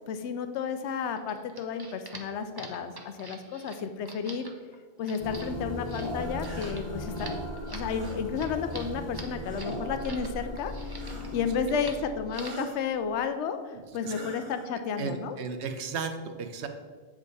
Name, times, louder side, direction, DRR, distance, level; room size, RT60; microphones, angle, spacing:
voice 1, 0.1-4.5 5.0-7.3 7.7-11.0 11.3-15.4, left 6 dB, 80° left, 9 dB, 0.9 m, -32 dB
sound 1, 1.1-10.3 10.6-11.3 11.7-12.0 12.3-12.7, right 2 dB, 25° right, 0.6 m, -45 dB
sound 2, 5.2-13.1, left 1 dB, 25° left, 0.8 m, -37 dB
sound 3, 6.4-6.8 7.9-8.2 9.4-9.9 11.0-11.5 12.3-12.8 14.0-14.7, right 2 dB, 40° right, 1.4 m, -43 dB
voice 2, 14.7-16.7, right 5 dB, 70° right, 7 dB, 1.0 m, -35 dB
8.2 x 5.0 x 4.0 m, 1.5 s
omnidirectional pair, 1.2 m